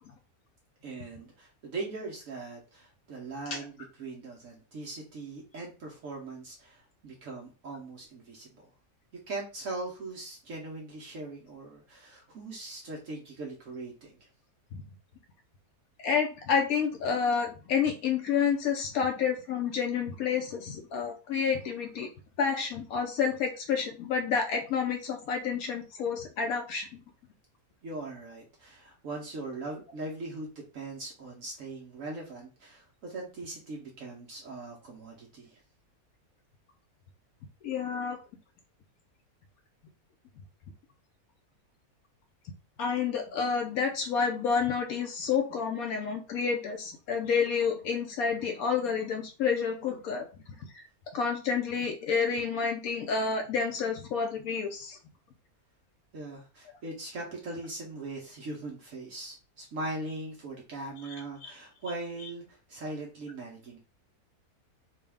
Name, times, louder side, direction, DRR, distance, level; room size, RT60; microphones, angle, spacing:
voice 1, 0.8-8.6 9.3-14.1 27.8-30.5 30.7-35.6 56.1-63.8, right 2 dB, 65° right, -1 dB, 1.1 m, -40 dB
voice 2, 16.0-22.1 22.4-26.9 37.6-38.2 42.8-50.2 50.7-50.8 51.1-55.0 61.4-61.5, left 6 dB, 75° left, 2 dB, 1.1 m, -29 dB
3.8 x 2.3 x 3.4 m, 0.34 s
omnidirectional pair, 1.5 m